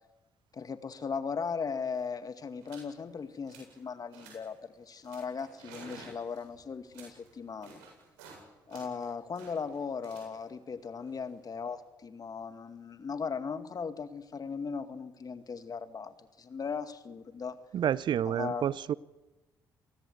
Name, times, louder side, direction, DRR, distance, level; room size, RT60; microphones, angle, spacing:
voice 1, 0.5-7.8 8.7-17.6 18.2-18.7, left 5 dB, 45° left, 10 dB, 2.2 m, -38 dB
sound 1, 1.6-1.7 1.8-2.1 2.6-2.9 3.3-3.8 4.1-4.6 5.0-8.4 8.7-11.7, right 4 dB, 90° right, 7.9 m, -53 dB
voice 2, 17.7-18.9, right 10 dB, 60° right, 21 dB, 0.7 m, -29 dB
27.5 x 18.5 x 8.1 m, 1.1 s
hypercardioid pair, 50°, 9 cm